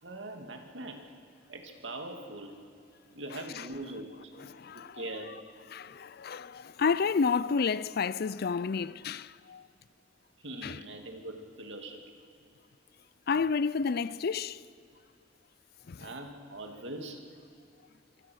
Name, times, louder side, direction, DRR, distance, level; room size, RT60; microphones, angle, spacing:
voice 1, 0.0-1.0 1.5-2.6 3.1-4.3 4.7-5.4 10.4-12.0 16.0-17.2, right 2 dB, 70° right, 2.5 m, -42 dB
voice 2, 4.4-5.0 5.7-9.7 10.6-10.8 13.3-14.6 15.9-16.1, left 5 dB, 55° left, 0.5 m, -30 dB
26.0 x 24.0 x 6.4 m
head